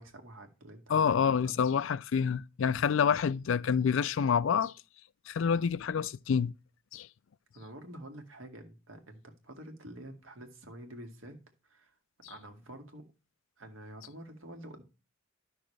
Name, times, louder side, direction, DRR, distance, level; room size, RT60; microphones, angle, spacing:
voice 1, 0.0-1.6 7.5-12.0 12.3-13.1 13.6-14.8, right 1 dB, 85° right, 2.0 m, -48 dB
voice 2, 0.9-4.7 5.3-6.5 6.9-7.1, left 7 dB, 70° left, 0.4 m, -27 dB
11.5 x 6.3 x 3.3 m
head